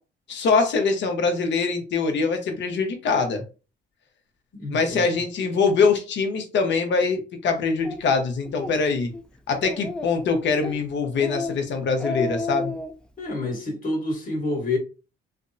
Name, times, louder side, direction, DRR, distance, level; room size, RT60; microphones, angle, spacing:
voice 1, 0.3-3.4 4.7-9.1 9.5-12.7, left 4 dB, 65° left, 0.8 m, -23 dB
voice 2, 4.5-5.1 13.2-14.8, left 2 dB, 45° left, 1.3 m, -28 dB
Speech, 7.8-8.0 8.4-8.7 9.1-9.2 9.6-10.2 10.6-10.8 11.1-11.6 11.9-12.9, left 3 dB, 5° left, 0.4 m, -31 dB
3.3 x 2.0 x 2.6 m
cardioid pair, 90°, 20 cm